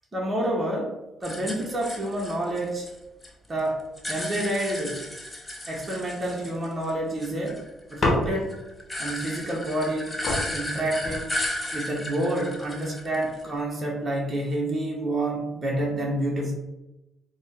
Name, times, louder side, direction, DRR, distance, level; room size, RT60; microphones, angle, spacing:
voice 1, 0.1-1.0 1.2-2.9 3.5-3.8 4.1-5.0 5.7-7.6 7.9-8.6 9.0-10.2 10.5-11.3 11.7-16.5, right 1 dB, 30° right, -2 dB, 0.9 m, -28 dB
sound 1, 1.2-3.3 3.6-6.9 7.2-13.6, left 1 dB, 15° left, 0.7 m, -35 dB
sound 2, 8.0-8.7 9.9-10.0 10.2-11.7 12.5-12.9, left 2 dB, 45° left, 1.0 m, -29 dB
4.1 x 2.1 x 3.4 m, 0.98 s
cardioid pair, 90°, 0 cm